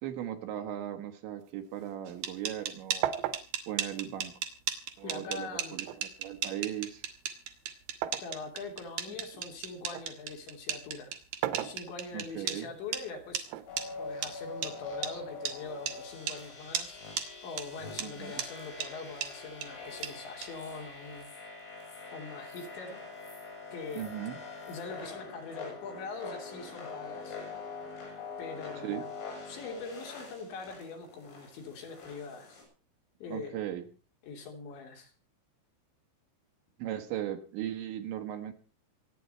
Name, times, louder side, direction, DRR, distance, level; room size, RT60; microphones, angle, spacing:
voice 1, 0.0-3.1 3.7-4.3 5.0-7.0 12.1-12.7 18.0-18.4 23.9-24.4 28.8-29.1 33.3-33.9 36.8-38.5, right 11 dB, 70° right, 7 dB, 3.2 m, -38 dB
sound 1, 1.4-2.7 3.0-5.0 5.8-8.4 8.9-10.1 11.2-12.3 13.5-14.5, right 12 dB, 90° right, 3.7 m, -38 dB
sound 2, 2.1-12.6 12.9-13.0 13.3-13.4 13.8-13.9 14.2-14.3 14.6-14.7 15.0-15.1 15.5-15.6 15.9-16.0 16.3-16.4 16.7-16.9 17.2-17.3 17.6-17.7 18.0-18.1 18.4-18.5 18.8-18.9 19.2-19.3 19.6-19.7 20.0-20.1 20.4-20.5, right 9 dB, 55° right, 2.7 m, -34 dB
voice 2, 5.0-5.8 8.2-11.1 11.6-13.5 14.0-17.0 17.4-21.3 22.1-23.0 23.7-24.1 24.7-27.4 28.4-29.1 29.5-32.6 33.2-33.6 34.2-35.1, left 4 dB, 65° left, 2 dB, 5.3 m, -43 dB
sound 3, 13.7-32.6, left 4 dB, 85° left, 10.5 m, -44 dB
26.5 x 9.3 x 4.4 m, 0.36 s
omnidirectional pair, 5.8 m